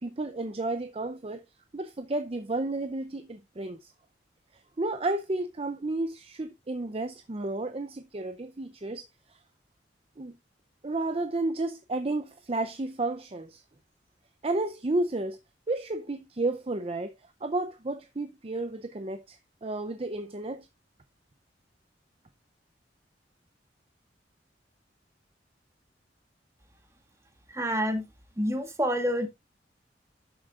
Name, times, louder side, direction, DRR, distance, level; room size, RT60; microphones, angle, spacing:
voice 1, 0.0-1.4 1.7-3.9 4.8-9.4 10.2-10.4 10.8-13.6 14.4-15.4 15.7-17.1 17.4-20.7, right 2 dB, 30° right, 0.6 m, -32 dB
voice 2, 27.5-28.0 28.4-29.3, equal, 15° right, 1.6 m, -27 dB
11.5 x 7.1 x 2.4 m
head